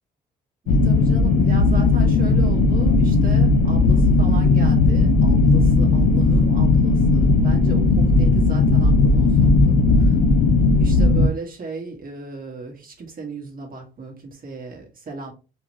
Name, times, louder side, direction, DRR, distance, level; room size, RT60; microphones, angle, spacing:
voice 1, 0.6-10.2 10.8-15.3, right 3 dB, 45° right, 1.7 m, -36 dB
sound 1, 0.7-11.3, left 3 dB, 85° left, 0.6 m, -16 dB
4.0 x 3.0 x 3.0 m
cardioid pair, 90°, 20 cm